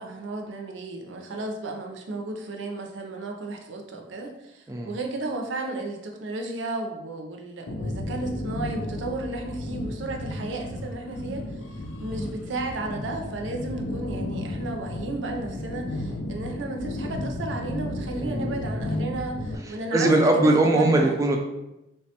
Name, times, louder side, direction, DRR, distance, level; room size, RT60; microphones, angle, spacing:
voice 1, 0.0-11.5 12.0-21.2, right 2 dB, 80° right, 2 dB, 0.5 m, -33 dB
sound 1, 7.7-19.6, left 1 dB, 85° left, 0.4 m, -33 dB
voice 2, 18.1-18.7 19.6-21.4, right 2 dB, 15° right, 2 dB, 0.3 m, -22 dB
3.2 x 2.2 x 2.8 m, 0.92 s
head